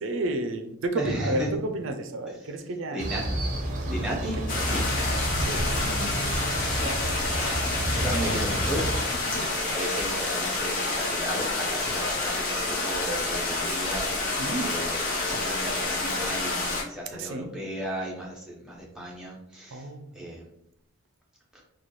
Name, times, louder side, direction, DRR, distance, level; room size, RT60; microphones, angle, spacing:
voice 1, 0.0-3.0 3.9-4.7 5.3-5.7 9.3-9.5 14.4-14.7 17.1-17.5 19.7-20.1, right 2 dB, 65° right, 7 dB, 0.4 m, -32 dB
voice 2, 1.0-1.5 2.9-3.2 3.9-4.9 5.8-6.2 6.5-8.8 9.6-14.1 14.5-19.9 20.1-20.4 21.5-21.6, right 1 dB, 5° right, -4 dB, 0.8 m, -35 dB
sound 1, 3.0-9.0, right 1 dB, 35° right, 0.7 m, -30 dB
sound 2, 4.5-16.8, left 3 dB, 40° left, 0.9 m, -28 dB
4.2 x 2.3 x 3.1 m, 0.78 s
head